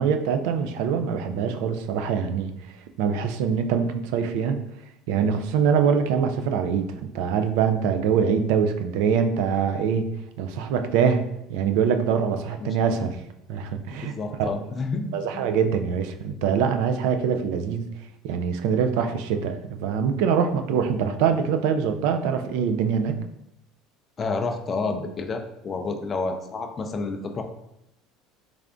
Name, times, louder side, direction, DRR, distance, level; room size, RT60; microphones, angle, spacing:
voice 1, 0.0-2.5 3.0-4.6 5.1-10.1 10.4-13.2 13.5-14.1 14.4-14.5 15.1-17.9 18.2-23.2, right 7 dB, 75° right, 7 dB, 0.3 m, -24 dB
voice 2, 14.0-15.6 24.2-27.4, left 3 dB, 25° left, 4 dB, 0.3 m, -30 dB
3.3 x 2.5 x 3.5 m, 0.84 s
cardioid pair, 150°, 0 cm